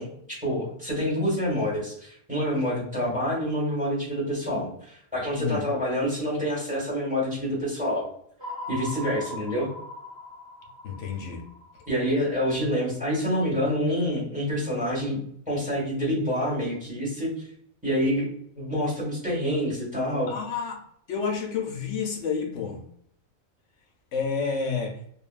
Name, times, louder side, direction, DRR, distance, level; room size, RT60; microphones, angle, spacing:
voice 1, 0.0-8.1 8.7-9.7 11.9-15.2 15.5-17.3 17.8-20.3, equal, 5° right, -5 dB, 1.1 m, -27 dB
sound 1, 8.4-12.6, left 1 dB, 25° right, 0.6 m, -40 dB
voice 2, 10.8-11.4 20.3-20.8 21.1-22.8 24.1-25.0, left 5 dB, 70° left, 2 dB, 0.8 m, -29 dB
2.8 x 2.2 x 2.4 m, 0.65 s
omnidirectional pair, 1.4 m